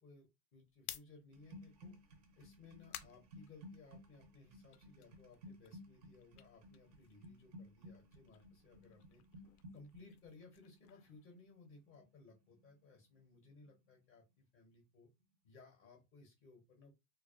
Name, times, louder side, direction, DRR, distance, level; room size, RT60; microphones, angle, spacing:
voice 1, 0.0-2.0 2.4-9.2 9.7-15.1 15.4-16.9, left 4 dB, 20° left, 3 dB, 0.6 m, -61 dB
sound 1, 0.7-4.2 4.6-7.5 7.8-12.0, left 11 dB, 75° left, 0.6 m, -56 dB
sound 2, 1.3-13.2 13.4-13.9, equal, 30° right, 0.4 m, -58 dB
2.4 x 2.2 x 2.3 m, 0.22 s
hypercardioid pair, 135°, 46 cm